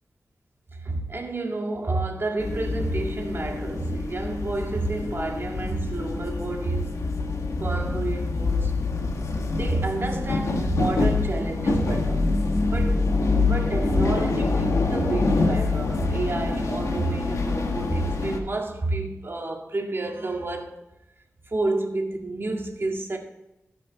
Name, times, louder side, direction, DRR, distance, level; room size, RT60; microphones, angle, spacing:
voice 1, 0.7-6.9 7.6-8.7 9.6-12.2 12.7-13.0 13.4-20.8 21.5-23.2, right 2 dB, 50° right, 1.8 m, -29 dB
sound 1, 2.4-18.4, left 3 dB, 90° left, 1.3 m, -25 dB
15.5 x 6.2 x 4.0 m
wide cardioid pair, 70°, 5 cm